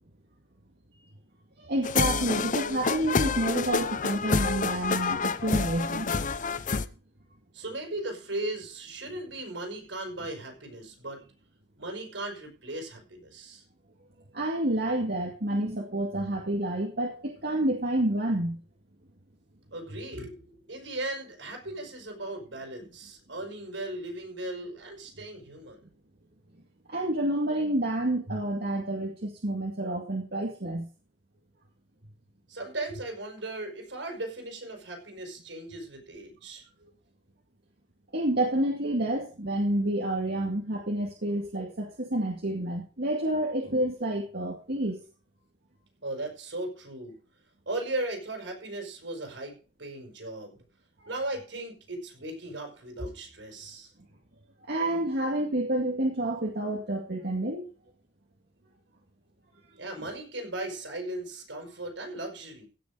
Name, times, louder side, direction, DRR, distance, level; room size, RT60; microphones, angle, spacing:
voice 1, 1.6-6.2 14.3-18.6 26.9-30.9 38.1-45.0 54.7-57.6 60.0-60.1, right 1 dB, 60° right, 0 dB, 2.2 m, -29 dB
sound 1, 1.8-6.8, left 5 dB, 45° left, 0.6 m, -28 dB
voice 2, 7.5-11.2 11.8-13.6 19.7-25.8 32.5-36.6 46.0-47.2 47.7-49.5 49.8-50.6 51.1-53.9 59.8-62.7, right 2 dB, 80° right, 4 dB, 5.6 m, -37 dB
16.5 x 6.9 x 5.0 m, 0.36 s
head